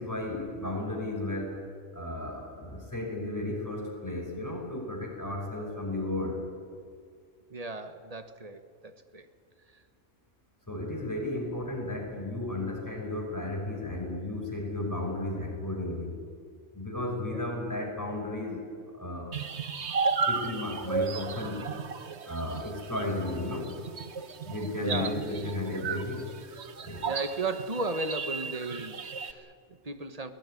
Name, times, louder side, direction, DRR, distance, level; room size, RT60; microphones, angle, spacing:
voice 1, 0.0-1.6 1.9-6.4 10.7-16.2 16.7-18.6 18.9-19.4 20.3-21.7 22.3-23.8 24.4-26.3 26.8-27.0, left 2 dB, 15° left, 1 dB, 5.2 m, -34 dB
voice 2, 7.5-9.3 9.7-9.8 24.8-25.2 27.0-30.3, right 3 dB, 30° right, 9 dB, 1.4 m, -35 dB
sound 1, 19.3-29.3, right 5 dB, 60° right, 1.4 m, -34 dB
23.5 x 18.0 x 9.9 m, 2.1 s
omnidirectional pair, 1.3 m